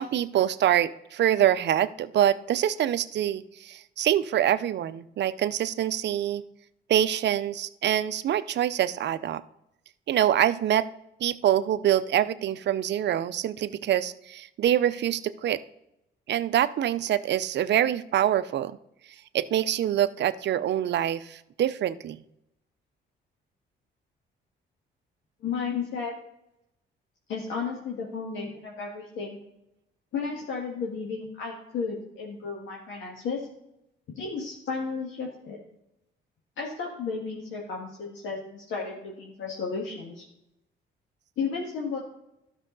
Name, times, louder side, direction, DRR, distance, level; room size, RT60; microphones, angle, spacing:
voice 1, 0.0-6.4 6.9-9.4 10.1-10.9 11.2-15.6 16.3-18.8 19.3-22.2, right 11 dB, 60° right, 15 dB, 0.6 m, -25 dB
voice 2, 25.4-26.1 27.3-29.4 30.1-33.5 34.1-35.6 36.6-40.3 41.4-42.0, left 5 dB, 75° left, -2 dB, 1.7 m, -33 dB
12.5 x 6.3 x 3.9 m, 0.84 s
cardioid pair, 90°, 20 cm